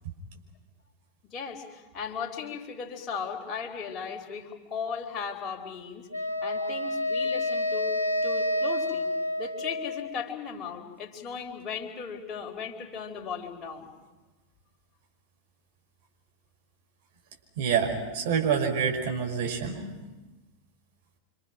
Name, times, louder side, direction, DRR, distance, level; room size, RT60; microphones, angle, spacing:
voice 1, 1.2-6.1 6.4-8.0 8.2-9.1 9.4-13.9, left 6 dB, 30° left, 2 dB, 4.1 m, -37 dB
Wind instrument woodwind instrument, 6.1-10.3, left 1 dB, 80° left, 1.2 m, -29 dB
voice 2, 17.6-20.1, right 7 dB, 50° right, 2 dB, 5.1 m, -27 dB
28.5 x 25.5 x 6.2 m, 1.1 s
figure-of-eight pair, 90°, 0 cm